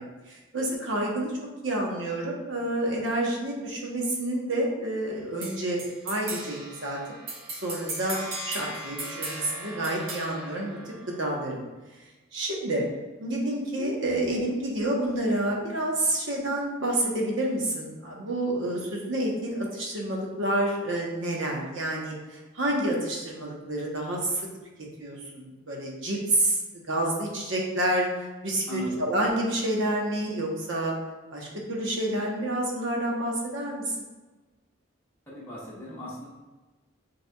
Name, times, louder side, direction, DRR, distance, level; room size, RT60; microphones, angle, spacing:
voice 1, 0.0-1.3 1.6-7.0 7.6-11.6 12.3-12.8 13.2-24.4 25.0-28.1 28.4-30.9 31.3-33.8, right 1 dB, 70° right, -2 dB, 1.0 m, -29 dB
sound 1, 5.4-11.4, right 2 dB, 90° right, 1.3 m, -38 dB
voice 2, 28.7-29.0 35.3-36.3, equal, 10° left, -9 dB, 1.0 m, -36 dB
6.7 x 3.4 x 2.3 m, 1.2 s
head